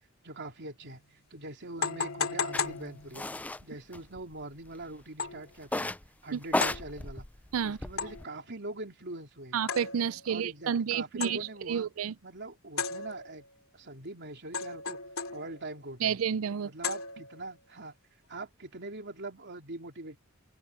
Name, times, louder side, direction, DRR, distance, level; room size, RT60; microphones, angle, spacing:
voice 1, 0.2-1.0 1.3-5.9 6.2-7.3 7.6-9.6 10.3-11.9 12.2-13.4 13.7-15.0 15.3-16.2 16.6-18.0 18.3-20.2, right 2 dB, 55° right, 3.6 m, -43 dB
sound 1, 0.8-0.9 1.8-3.5 5.2-5.5 6.6-6.9 8.0-8.4 9.7-10.3 11.2-11.6 12.8-13.5 14.5-15.7 16.8-17.5, left 5 dB, 75° left, 2.6 m, -35 dB
sound 2, 2.5-2.6 3.1-3.6 3.9-4.7 5.6-6.1 6.4-8.2, left 2 dB, 5° left, 0.4 m, -33 dB
voice 2, 9.5-11.4 11.7-12.1 16.0-16.7, right 7 dB, 70° right, 0.4 m, -30 dB
open air
head